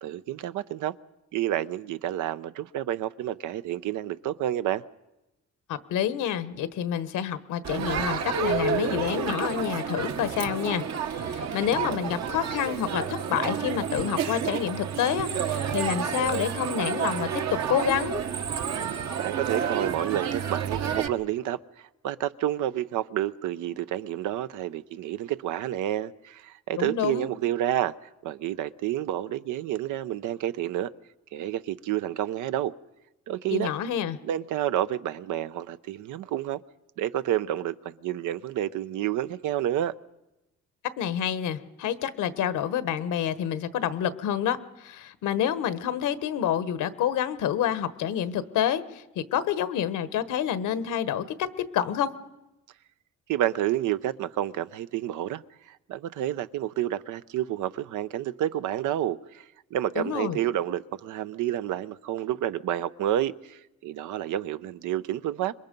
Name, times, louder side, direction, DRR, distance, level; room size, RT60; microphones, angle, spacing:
voice 1, 0.0-1.0 1.3-4.8 19.2-27.9 28.2-30.9 31.3-32.7 33.3-33.7 34.2-36.6 37.0-39.9 53.3-55.4 55.7-59.4 59.7-65.5, right 12 dB, 85° right, 13 dB, 0.7 m, -29 dB
voice 2, 5.7-18.2 26.8-27.3 33.5-34.2 41.0-52.1 59.9-60.4, left 9 dB, 85° left, 13 dB, 1.3 m, -28 dB
Crowd, 7.6-21.1, right 7 dB, 60° right, 1.3 m, -30 dB
26.5 x 22.5 x 5.3 m, 0.95 s
cardioid pair, 90°, 30 cm